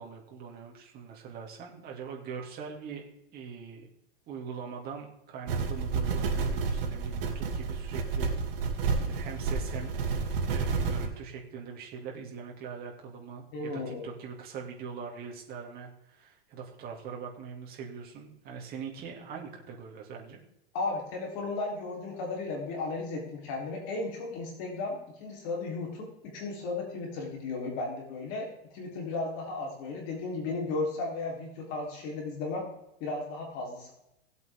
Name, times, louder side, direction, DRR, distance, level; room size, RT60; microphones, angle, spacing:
voice 1, 0.0-3.0 3.3-3.9 4.3-8.3 9.0-9.9 10.4-20.4, right 6 dB, 30° right, -1 dB, 2.5 m, -42 dB
sound 1, 5.5-11.1, right 4 dB, 60° right, 2.6 m, -30 dB
voice 2, 13.5-14.0 20.7-28.5 28.7-32.7 33.0-33.9, left 3 dB, 40° left, -1 dB, 3.7 m, -35 dB
18.0 x 8.2 x 3.7 m, 0.83 s
supercardioid pair, 145°, 31 cm